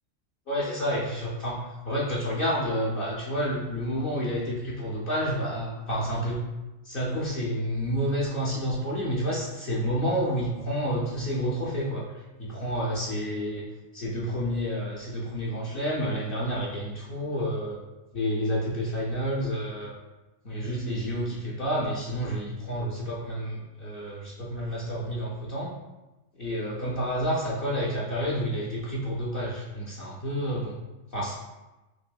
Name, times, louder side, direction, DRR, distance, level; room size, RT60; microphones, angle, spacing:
voice 1, 0.5-6.4 6.8-13.6 13.9-17.8 18.1-19.9 20.4-25.7 26.3-30.7 31.1-31.4, equal, 55° left, -5 dB, 0.7 m, -29 dB
6.1 x 2.6 x 2.2 m, 1.1 s
omnidirectional pair, 1.4 m